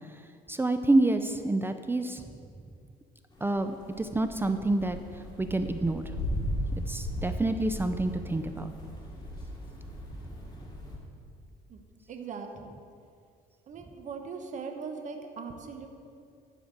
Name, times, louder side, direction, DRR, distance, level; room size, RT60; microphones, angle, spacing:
voice 1, 0.5-2.2 3.4-5.0 5.4-6.6 6.9-8.7, right 2 dB, 15° right, 8 dB, 0.5 m, -28 dB
sound 1, 3.3-11.0, equal, 25° left, 2.3 m, -37 dB
voice 2, 12.1-12.8 13.7-15.9, right 5 dB, 45° right, 4 dB, 1.1 m, -40 dB
11.0 x 5.0 x 7.6 m, 2.4 s
cardioid pair, 110°, 17 cm